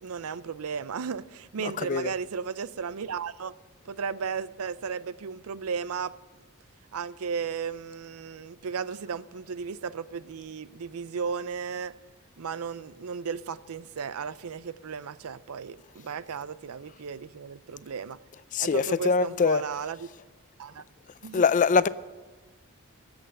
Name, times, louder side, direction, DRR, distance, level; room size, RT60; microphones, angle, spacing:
voice 1, 0.0-3.6 3.8-6.1 6.9-11.9 12.4-18.2 18.6-20.1 20.6-20.8 21.2-21.4, right 6 dB, 80° right, 0.5 m, -35 dB
voice 2, 1.8-2.1 18.5-19.6 21.3-21.9, left 5 dB, 35° left, 0.4 m, -23 dB
19.0 x 8.0 x 6.6 m
head